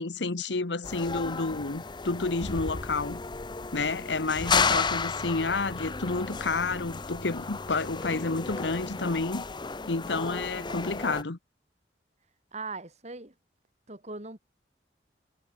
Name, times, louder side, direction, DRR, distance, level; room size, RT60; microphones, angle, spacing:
voice 1, 0.0-3.2 3.7-9.4 9.9-11.4, left 3 dB, 80° left, 1.2 m, -30 dB
sound 1, 0.8-11.2, left 4 dB, 25° left, 0.7 m, -33 dB
voice 2, 12.5-13.3 13.9-14.4, right 3 dB, 40° right, 4.1 m, -39 dB
head